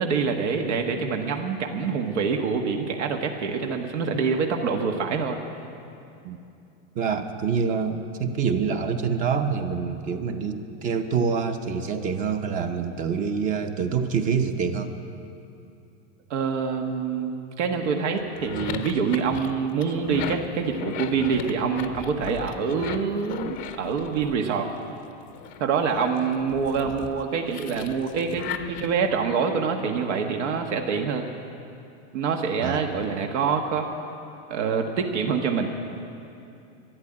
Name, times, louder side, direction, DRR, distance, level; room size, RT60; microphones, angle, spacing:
voice 1, 0.0-5.4 16.3-24.7 25.6-31.2 32.1-33.9 34.5-35.7, right 5 dB, 85° right, 4 dB, 1.5 m, -26 dB
voice 2, 6.9-14.9 32.6-32.8, right 6 dB, 25° right, 8 dB, 0.6 m, -26 dB
sound 1, 18.2-24.9 25.3-29.2, left 9 dB, 25° left, 0.5 m, -37 dB
13.0 x 10.5 x 9.8 m, 2.7 s
supercardioid pair, 165°, 35 cm